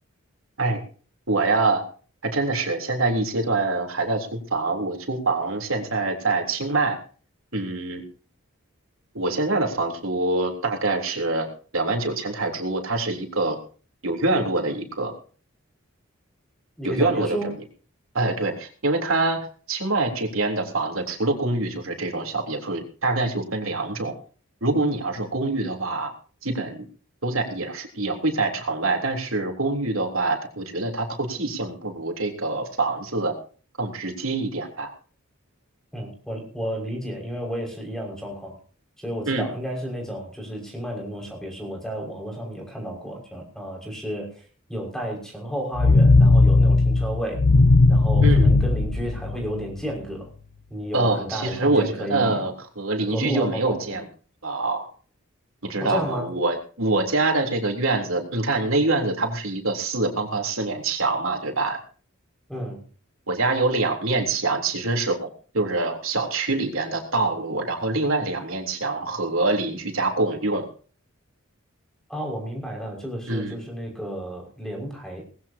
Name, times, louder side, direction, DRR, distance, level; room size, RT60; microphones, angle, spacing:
voice 1, 1.3-1.9 2.2-7.0 7.5-8.0 9.1-11.5 11.7-13.6 14.0-15.1 16.8-17.4 18.1-24.1 24.6-26.1 26.4-26.8 27.2-33.3 33.8-34.9 39.3-39.5 48.2-48.5 50.9-54.0 54.4-54.9 55.6-61.8 63.3-65.3 65.5-70.6 73.3-73.6, right 2 dB, 75° right, 3 dB, 3.6 m, -25 dB
voice 2, 16.8-17.5 35.9-38.6 39.0-44.4 44.7-47.5 47.9-50.3 50.7-52.4 53.1-54.0 55.8-56.3 62.5-62.8 72.1-75.2, equal, 5° left, 0 dB, 5.9 m, -32 dB
sound 1, 45.8-49.8, left 3 dB, 90° left, 0.9 m, -17 dB
19.5 x 16.0 x 2.9 m, 0.39 s
head